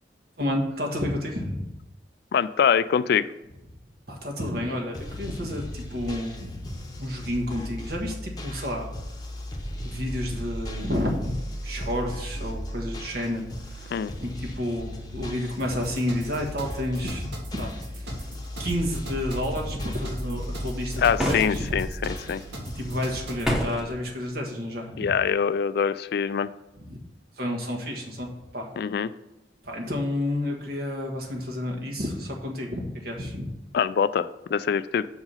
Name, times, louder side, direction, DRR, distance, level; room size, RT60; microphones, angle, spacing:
voice 1, 0.4-1.7 4.1-8.9 9.8-18.1 18.6-21.7 22.6-25.1 26.8-27.0 27.4-28.7 29.6-33.5, left 1 dB, 60° right, 0 dB, 1.6 m, -30 dB
voice 2, 2.3-3.2 13.9-14.1 21.0-22.4 25.0-26.5 28.8-29.1 33.7-35.1, left 7 dB, 60° left, 15 dB, 0.3 m, -24 dB
sound 1, 4.9-23.2, equal, 25° left, 0.9 m, -36 dB
sound 2, 15.6-23.5, equal, 80° right, 2.1 m, -40 dB
sound 3, 21.2-21.9 23.4-23.9, equal, 5° right, 0.9 m, -27 dB
6.5 x 4.8 x 5.7 m, 0.93 s
head